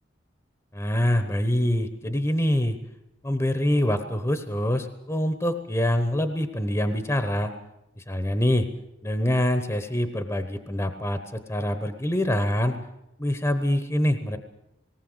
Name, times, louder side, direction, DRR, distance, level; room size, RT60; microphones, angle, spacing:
voice 1, 0.7-2.8 3.2-7.5 8.0-8.7 9.0-12.8 13.2-14.4, left 1 dB, 15° left, 9 dB, 1.0 m, -25 dB
19.0 x 19.0 x 8.0 m, 0.86 s
head